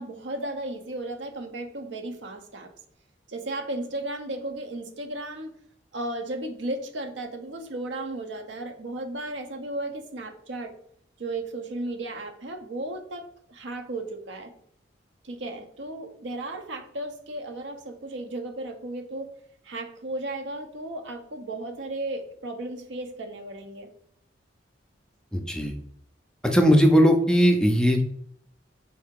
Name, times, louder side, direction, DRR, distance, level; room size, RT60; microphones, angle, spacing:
voice 1, 0.0-2.7 3.3-5.6 5.9-10.7 11.2-14.5 15.2-19.3 19.6-23.9, right 2 dB, 75° right, 6 dB, 0.6 m, -35 dB
voice 2, 25.3-25.7 26.4-28.0, equal, 5° left, 3 dB, 0.4 m, -19 dB
4.2 x 2.7 x 3.7 m, 0.66 s
head